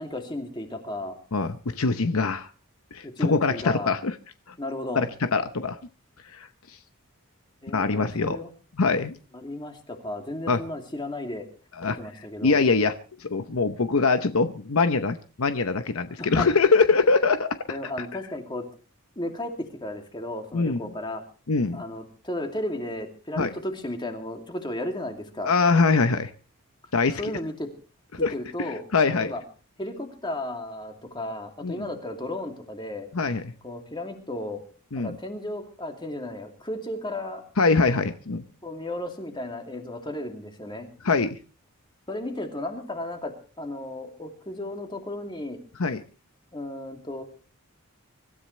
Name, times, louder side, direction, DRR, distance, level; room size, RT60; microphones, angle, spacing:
voice 1, 0.0-1.2 3.0-3.9 4.6-5.1 7.6-8.5 9.3-11.5 12.0-12.7 16.2-16.5 17.7-18.6 19.2-21.2 21.7-25.5 27.2-27.7 28.2-29.4 29.8-33.1 33.6-34.6 35.0-37.5 38.6-40.9 42.1-45.6 46.5-47.2, left 1 dB, 20° left, 4 dB, 2.5 m, -34 dB
voice 2, 1.3-2.5 2.9-4.1 5.0-5.8 6.3-6.5 7.7-8.4 8.8-9.2 10.5-10.6 11.8-12.0 12.4-12.9 13.2-18.1 20.5-20.8 21.5-21.8 23.4-23.5 25.4-26.3 26.9-27.3 28.2-28.3 28.9-29.3 31.6-31.9 33.1-33.5 34.9-35.2 37.6-38.4 41.0-41.4 45.8-46.0, left 4 dB, 70° left, 10 dB, 0.8 m, -23 dB
25.0 x 13.5 x 3.2 m, 0.37 s
head